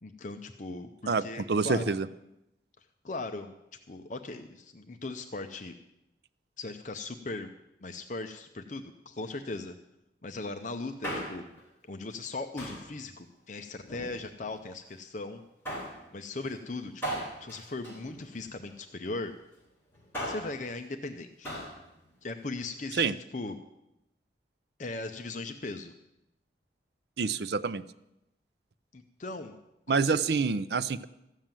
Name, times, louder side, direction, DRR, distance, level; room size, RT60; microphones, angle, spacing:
voice 1, 0.0-2.0 3.0-3.5 3.9-5.7 6.6-7.5 7.8-9.7 10.2-11.5 11.8-15.4 16.1-19.3 20.3-21.5 22.2-23.6 24.8-25.9 28.9-29.6 29.9-30.2, left 3 dB, 40° left, 6 dB, 0.6 m, -38 dB
voice 2, 1.1-2.1 22.9-23.1 27.2-27.8 29.9-31.1, right 4 dB, 65° right, 15 dB, 0.5 m, -27 dB
Male speech man speaking, 10.8-11.6 12.6-12.9 13.8-14.6 15.6-16.0 17.0-18.7 19.9-20.6 21.4-21.8 22.1-22.2, right 1 dB, 15° left, 3.9 m, -38 dB
14.0 x 7.4 x 9.0 m, 0.88 s
head